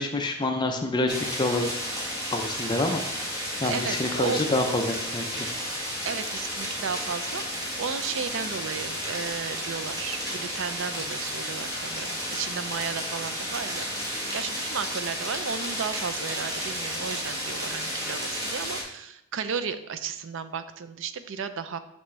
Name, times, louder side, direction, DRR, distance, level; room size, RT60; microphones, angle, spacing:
voice 1, 0.0-1.7 2.3-3.0 3.6-5.5, left 2 dB, 20° left, 4 dB, 0.4 m, -27 dB
sound 1, 1.1-18.8, equal, 15° right, 1.1 m, -32 dB
voice 2, 3.6-4.4 6.0-21.8, right 6 dB, 60° right, 11 dB, 0.4 m, -34 dB
5.9 x 5.6 x 3.2 m, 0.84 s
head